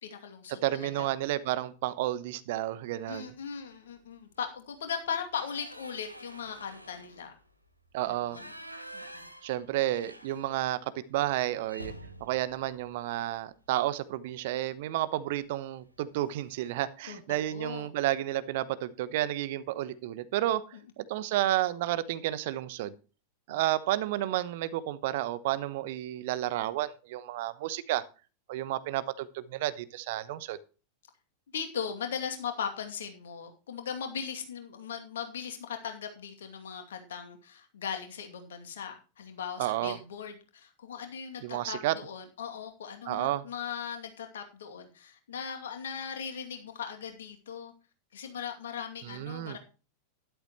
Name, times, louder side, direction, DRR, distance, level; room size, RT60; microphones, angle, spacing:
voice 1, 0.0-1.1 3.1-7.4 8.1-8.5 8.9-9.3 17.1-17.9 20.7-20.8 23.5-23.6 31.5-47.7 48.1-49.6, left 7 dB, 60° left, 5 dB, 2.5 m, -39 dB
voice 2, 0.6-3.3 7.9-8.4 9.4-10.8 11.1-11.9 12.2-20.6 21.0-22.9 23.5-28.0 28.5-30.6 39.6-40.0 41.4-41.9 43.1-43.4 49.0-49.6, right 14 dB, 50° right, 15 dB, 1.0 m, -31 dB
sound 1, 3.5-3.9 4.3-4.4 4.8-10.8 11.1-11.3 11.7-13.8 15.1-15.4 15.8-15.9 16.2-16.9, right 1 dB, 90° right, 1.4 m, -49 dB
12.5 x 11.5 x 3.1 m, 0.34 s
figure-of-eight pair, 90°, 0 cm